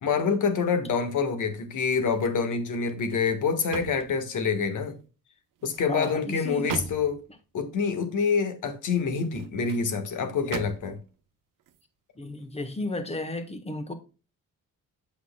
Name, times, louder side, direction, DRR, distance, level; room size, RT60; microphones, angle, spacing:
voice 1, 0.0-5.0 5.6-7.2 7.5-11.0, left 5 dB, 65° left, 1.5 m, -26 dB
sound 1, 1.7-2.5 2.9-4.8 5.6-7.3 9.1-9.9 10.5-11.1 11.6-11.8, right 8 dB, 75° right, 0.9 m, -40 dB
voice 2, 5.9-6.7 12.1-13.9, left 2 dB, 20° left, 1.3 m, -33 dB
8.1 x 6.2 x 2.3 m
cardioid pair, 115°, 32 cm